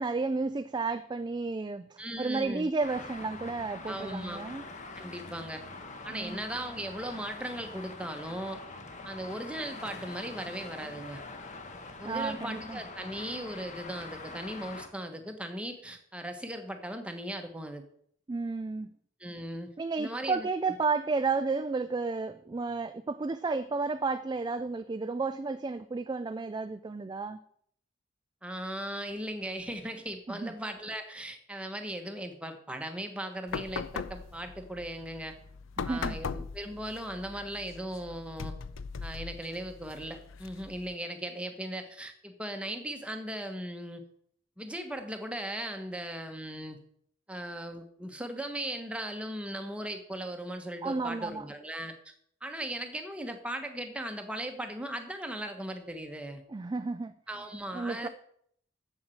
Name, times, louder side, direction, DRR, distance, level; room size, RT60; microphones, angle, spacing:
voice 1, 0.0-4.6 6.1-6.4 12.0-12.8 18.3-18.9 19.8-27.4 30.3-30.5 35.8-36.2 50.8-51.4 56.5-57.1 57.7-58.1, right 4 dB, 20° right, 0.3 m, -32 dB
voice 2, 2.0-2.7 3.9-4.4 5.0-5.6 6.0-8.6 9.0-11.2 12.0-17.8 19.2-19.7 20.0-20.5 28.4-35.4 35.8-38.5 39.0-44.0 44.6-46.8 47.3-52.1 52.4-56.4 57.3-58.1, right 1 dB, 5° right, 1.1 m, -38 dB
Traffic noise roadway noise, 2.8-14.9, left 3 dB, 35° left, 1.1 m, -44 dB
sound 1, 33.5-40.9, left 5 dB, 70° left, 0.5 m, -40 dB
7.4 x 7.2 x 7.8 m
head